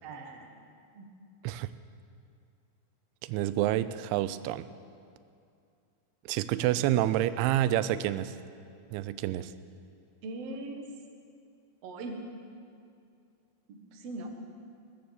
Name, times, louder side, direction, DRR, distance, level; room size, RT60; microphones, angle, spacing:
voice 1, 0.0-0.6 0.9-1.1 6.6-6.7 7.5-8.1 10.2-10.9 11.8-12.2 13.7-14.3, right 2 dB, 75° right, 2 dB, 1.4 m, -41 dB
voice 2, 3.2-4.7 6.3-8.4 8.9-9.5, right 13 dB, 90° right, 14 dB, 2.9 m, -28 dB
20.5 x 9.7 x 7.1 m, 2.4 s
omnidirectional pair, 5.2 m